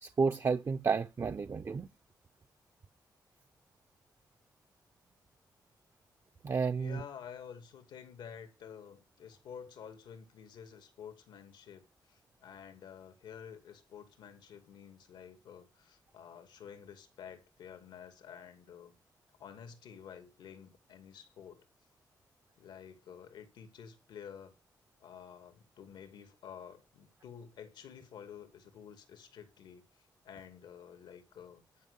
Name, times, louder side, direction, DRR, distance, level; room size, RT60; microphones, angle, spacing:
voice 1, 0.0-1.9 6.4-7.0, right 5 dB, 40° right, 0.7 m, -31 dB
voice 2, 6.7-18.9 19.4-21.6 22.6-24.5 25.0-31.9, left 8 dB, 90° left, 2.4 m, -50 dB
11.0 x 5.3 x 8.3 m
cardioid pair, 70°, 8 cm